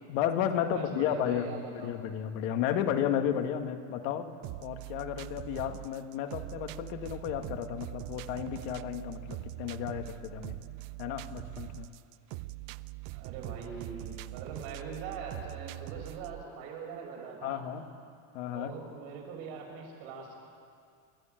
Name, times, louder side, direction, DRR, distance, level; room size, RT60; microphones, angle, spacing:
voice 1, 0.1-4.3 4.6-10.6 11.0-11.9 17.4-17.8 18.3-18.7, left 9 dB, 80° left, 6 dB, 2.0 m, -33 dB
voice 2, 0.7-1.9 13.1-17.6 18.5-20.4, right 5 dB, 85° right, 0 dB, 6.5 m, -42 dB
sound 1, 4.4-16.4, right 19 dB, 60° right, 0.6 m, -42 dB
29.0 x 13.5 x 9.1 m, 2.3 s
cardioid pair, 170°, 38 cm